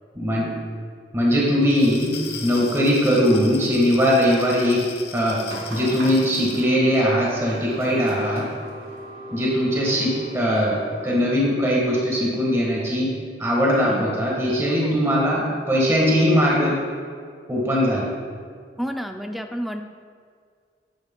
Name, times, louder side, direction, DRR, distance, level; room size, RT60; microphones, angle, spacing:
voice 1, 0.1-0.6 1.1-4.8 5.1-5.4 5.7-8.5 9.3-16.8 17.5-18.1, equal, 15° right, -4 dB, 1.4 m, -20 dB
Glass, 1.6-6.7, left 6 dB, 65° left, 1.0 m, -38 dB
sound 1, 5.4-11.2, equal, 65° right, 2.2 m, -38 dB
voice 2, 18.8-19.8, equal, ahead, 5 dB, 0.3 m, -30 dB
10.0 x 9.7 x 2.2 m, 2.1 s
head